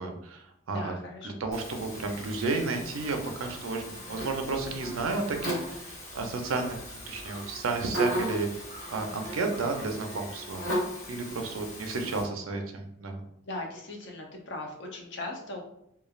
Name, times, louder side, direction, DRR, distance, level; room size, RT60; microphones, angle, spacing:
voice 1, 0.0-0.9 1.2-6.8 7.1-8.5 8.9-10.6 11.1-13.2, right 3 dB, 90° right, 4 dB, 0.5 m, -32 dB
voice 2, 0.7-1.4 13.5-15.6, left 2 dB, 60° left, 1 dB, 0.6 m, -39 dB
Buzz, 1.5-12.2, equal, 75° left, 1.2 m, -37 dB
3.1 x 2.3 x 2.3 m, 0.77 s
head